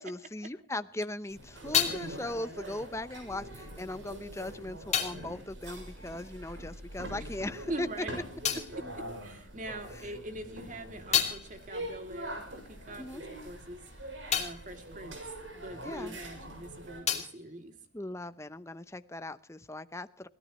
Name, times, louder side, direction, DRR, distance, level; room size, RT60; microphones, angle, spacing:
voice 1, 0.0-7.9 13.0-13.2 15.8-16.2 17.9-20.3, left 1 dB, 15° left, 12 dB, 0.7 m, -39 dB
sound 1, 0.9-6.9 7.2-9.9 10.3-16.3 16.6-18.6, left 9 dB, 35° left, 2.7 m, -36 dB
sound 2, 1.3-17.0, right 1 dB, 70° right, 6.5 m, -44 dB
voice 2, 7.7-8.2 8.7-17.7, right 1 dB, 40° right, 6 dB, 2.8 m, -43 dB
24.0 x 17.5 x 3.1 m, 0.43 s
head